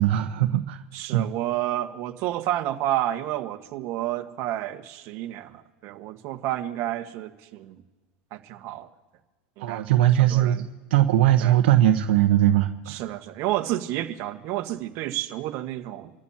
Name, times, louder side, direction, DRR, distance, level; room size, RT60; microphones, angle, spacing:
voice 1, 0.0-0.8 1.1-1.3 9.6-10.6 10.9-13.0, right 13 dB, 80° right, 5 dB, 1.1 m, -20 dB
voice 2, 0.9-7.8 8.3-8.9 9.6-10.6 11.4-11.6 12.9-16.1, right 14 dB, 55° right, 5 dB, 1.6 m, -30 dB
28.5 x 13.5 x 2.9 m, 1.2 s
supercardioid pair, 110°, 6 cm